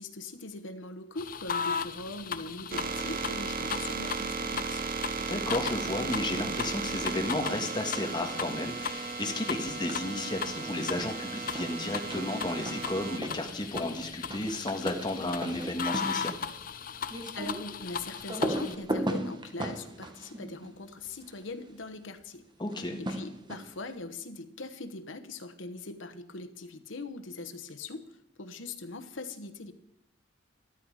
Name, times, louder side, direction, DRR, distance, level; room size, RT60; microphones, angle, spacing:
voice 1, 0.0-4.8 17.3-22.4 23.0-28.0 28.4-29.7, left 3 dB, 80° left, 10 dB, 1.1 m, -41 dB
sound 1, 1.2-18.8, left 7 dB, 50° left, 0.6 m, -38 dB
sound 2, 2.7-13.2, right 5 dB, 50° right, 0.7 m, -36 dB
voice 2, 5.3-16.3 22.6-23.0, left 1 dB, 25° left, 3 dB, 1.6 m, -33 dB
sound 3, 9.7-10.1 10.4-21.4 22.7-23.9, right 1 dB, 25° right, 1.2 m, -38 dB
13.0 x 12.5 x 4.9 m, 0.79 s
head